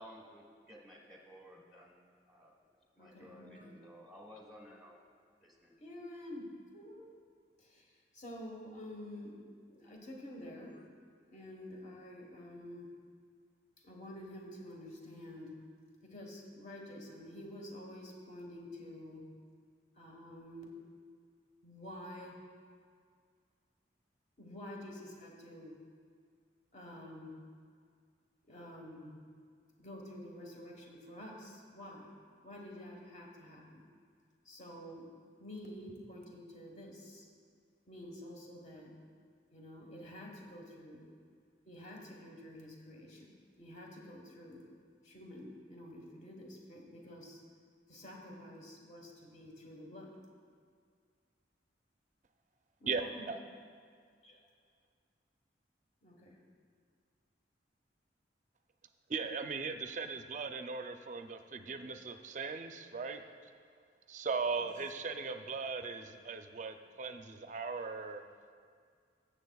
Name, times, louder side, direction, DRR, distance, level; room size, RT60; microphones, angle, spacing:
voice 1, 0.0-2.0 2.3-2.5 3.0-4.9 5.4-5.8, equal, ahead, -2 dB, 1.1 m, -55 dB
voice 2, 3.0-3.9 5.8-7.0 7.6-10.9 11.3-12.9 13.8-15.7 16.0-19.3 19.9-20.8 21.6-22.4 24.4-25.8 26.7-27.4 28.4-29.2 29.8-32.1 32.4-33.9 34.4-35.1 35.4-37.2 37.9-39.0 39.5-41.1 41.7-44.7 45.0-47.4 47.9-50.2 52.8-53.3 54.2-54.4 56.0-56.4 64.5-64.6 65.0-65.2, left 1 dB, 40° left, 0 dB, 1.3 m, -49 dB
voice 3, 52.9-53.4 59.1-63.2 64.1-68.2, right 4 dB, 40° right, 7 dB, 0.5 m, -38 dB
17.5 x 7.4 x 2.3 m, 2.1 s
head